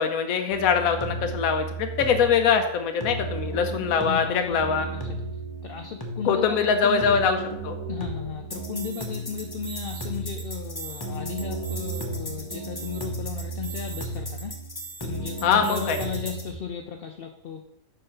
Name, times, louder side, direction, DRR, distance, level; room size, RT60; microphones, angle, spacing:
voice 1, 0.0-4.9 6.2-7.4 7.6-7.8 15.4-16.0, left 6 dB, 80° left, 6 dB, 1.1 m, -23 dB
sound 1, 0.5-16.5, right 2 dB, 20° left, 0.9 m, -34 dB
voice 2, 4.0-5.2 5.6-7.2 7.9-14.6 15.0-17.6, left 7 dB, 65° left, 5 dB, 0.6 m, -35 dB
5.6 x 5.4 x 5.6 m, 0.81 s
omnidirectional pair, 1.4 m